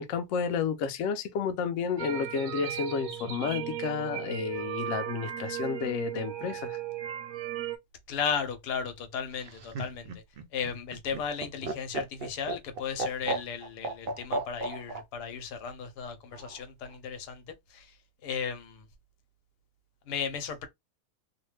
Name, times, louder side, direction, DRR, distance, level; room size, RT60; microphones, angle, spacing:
voice 1, 0.0-6.8, left 6 dB, 70° left, 0.8 m, -31 dB
sound 1, 2.0-7.8, right 11 dB, 70° right, 0.9 m, -36 dB
voice 2, 8.1-10.2 10.5-18.0 18.2-18.9 20.1-20.7, left 7 dB, 85° left, 1.2 m, -35 dB
Laughter, 9.3-15.0 16.3-17.0, right 3 dB, 90° right, 0.5 m, -34 dB
2.8 x 2.1 x 3.1 m
omnidirectional pair, 1.7 m